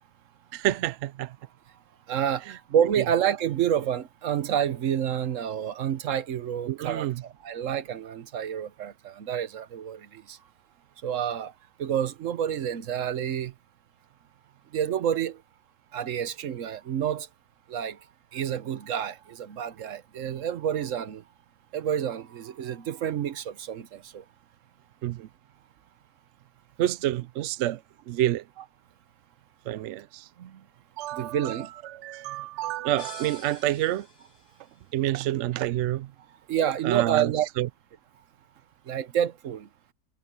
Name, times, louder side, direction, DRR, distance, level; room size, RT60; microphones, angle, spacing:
voice 1, 0.5-1.4 3.0-3.1 6.7-7.2 25.0-25.3 26.8-28.5 29.7-30.6 31.0-34.1 34.9-36.1 36.8-37.7, right 14 dB, 80° right, 0.6 m, -29 dB
voice 2, 2.1-10.4 11.0-11.5 11.8-13.5 14.7-15.4 15.9-17.3 17.7-18.0 18.3-21.2 21.7-24.2 31.1-31.7 36.5-37.5 38.9-39.7, right 9 dB, 55° right, 1.1 m, -28 dB
sound 1, 33.0-34.8, left 3 dB, 85° left, 3.6 m, -46 dB
omnidirectional pair, 1.7 m